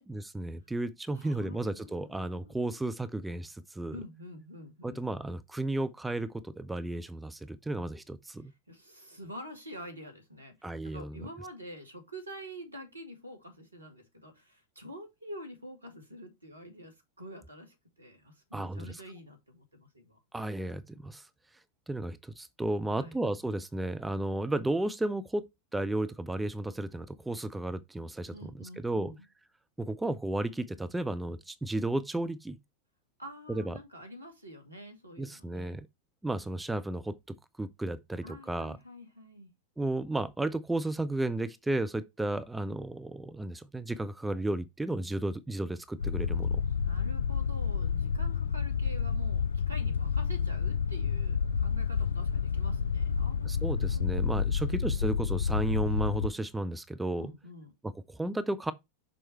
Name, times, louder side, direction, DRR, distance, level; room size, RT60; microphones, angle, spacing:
voice 1, 0.1-4.0 4.8-8.5 10.6-11.3 18.5-19.0 20.3-21.3 21.9-29.1 29.8-32.6 33.5-33.8 35.2-35.9 36.2-38.8 39.8-46.6 53.5-57.3 57.8-58.7, right 2 dB, 5° right, 0.4 m, -33 dB
voice 2, 1.1-2.8 3.9-5.0 8.7-10.6 10.8-20.2 22.9-23.2 28.3-29.3 33.2-35.8 38.2-39.5 46.8-55.0 57.2-57.7, equal, 80° right, 2.0 m, -47 dB
sound 1, 46.0-56.3, left 6 dB, 70° left, 0.3 m, -29 dB
6.3 x 4.4 x 4.4 m
figure-of-eight pair, 90°, 0 cm